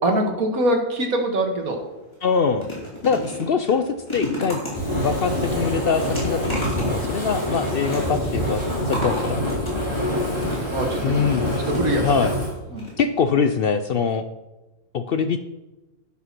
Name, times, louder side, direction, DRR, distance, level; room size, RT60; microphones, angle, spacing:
voice 1, 0.0-1.8 10.1-12.3 12.7-12.9, right 1 dB, 75° right, 3 dB, 2.0 m, -24 dB
sound 1, 1.6-1.8 2.1-10.9 11.6-12.4 12.8-12.9 13.2-13.3, left 1 dB, 20° left, 3.6 m, -34 dB
voice 2, 2.2-2.7 3.0-4.6 5.0-9.4 11.0-11.5 12.0-12.3 13.0-14.3 14.9-15.4, left 6 dB, 70° left, 10 dB, 0.5 m, -23 dB
Fire, 4.7-12.5, left 1 dB, 15° right, 4.1 m, -25 dB
11.5 x 5.9 x 6.0 m, 1.1 s
omnidirectional pair, 1.5 m